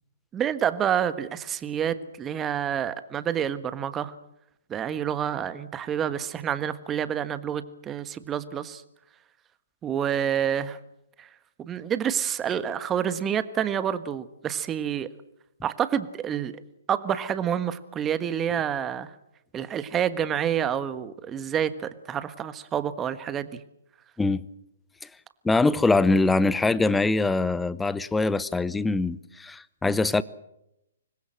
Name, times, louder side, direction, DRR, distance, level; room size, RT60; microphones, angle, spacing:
voice 1, 0.3-4.1 4.7-8.8 9.8-10.8 11.2-11.3 11.6-15.1 15.6-16.6 16.9-19.1 19.5-23.6, right 9 dB, 20° right, 1.5 m, -28 dB
voice 2, 25.4-30.2, left 3 dB, 5° left, 0.8 m, -23 dB
26.0 x 21.0 x 7.8 m
figure-of-eight pair, 125°, 0 cm